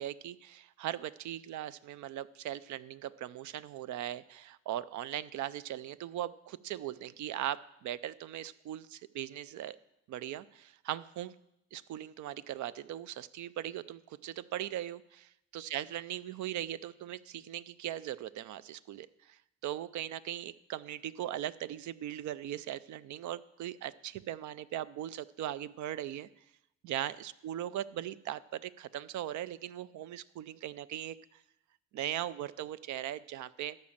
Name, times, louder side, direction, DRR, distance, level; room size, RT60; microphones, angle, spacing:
voice 1, 0.0-9.8 10.1-11.3 11.7-26.3 26.8-31.4 31.9-33.8, right 12 dB, 75° right, 17 dB, 0.5 m, -39 dB
13.0 x 5.4 x 7.3 m, 0.84 s
cardioid pair, 90°, 30 cm